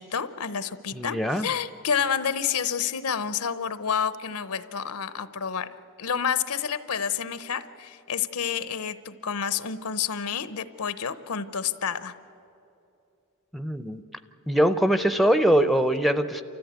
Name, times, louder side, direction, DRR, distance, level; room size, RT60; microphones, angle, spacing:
voice 1, 0.0-5.7 6.0-12.1, left 7 dB, 85° left, 14 dB, 0.8 m, -29 dB
voice 2, 0.9-1.5 13.5-14.0 14.5-16.4, right 1 dB, ahead, 10 dB, 0.5 m, -22 dB
29.0 x 14.0 x 8.2 m, 2.9 s
head